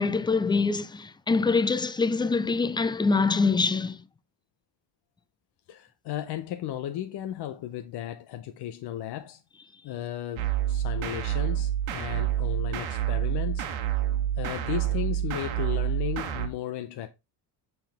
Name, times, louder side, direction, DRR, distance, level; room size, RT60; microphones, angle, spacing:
voice 1, 0.0-4.0, left 4 dB, 10° left, 0.4 m, -24 dB
voice 2, 5.7-9.4 9.8-13.7 14.4-17.1, left 12 dB, 60° left, 0.8 m, -35 dB
sound 1, 10.4-16.5, right 11 dB, 80° right, 1.5 m, -28 dB
7.0 x 5.9 x 3.4 m
cardioid pair, 110°, 46 cm